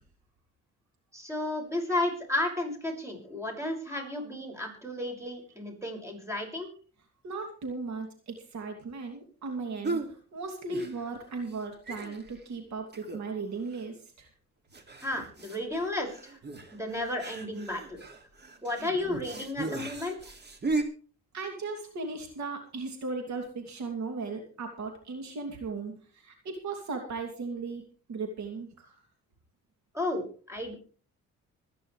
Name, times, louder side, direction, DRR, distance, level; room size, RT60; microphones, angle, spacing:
voice 1, 1.1-6.7 15.0-16.4 16.7-18.0 18.6-20.3 29.9-30.7, left 1 dB, 10° right, 2 dB, 6.1 m, -33 dB
voice 2, 7.2-14.3 21.3-27.8 28.1-29.0, right 4 dB, 65° right, 4 dB, 2.9 m, -37 dB
sound 1, 9.8-10.1 10.7-11.2 11.5-11.6 11.9-12.4 12.9-13.4 13.7-13.8 14.7-20.8, right 3 dB, 35° right, 2.5 m, -36 dB
25.0 x 9.9 x 3.3 m, 0.41 s
cardioid pair, 90°, 30 cm